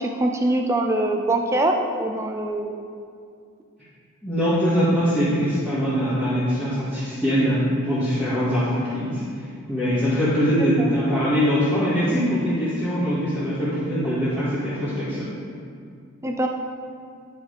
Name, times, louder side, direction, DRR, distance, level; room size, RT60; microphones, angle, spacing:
voice 1, 0.0-2.8 10.8-10.9 16.2-16.5, right 1 dB, 15° right, 3 dB, 0.5 m, -23 dB
voice 2, 4.2-9.2 9.7-15.2, equal, 5° left, -16 dB, 2.2 m, -22 dB
10.5 x 5.0 x 5.1 m, 2.3 s
head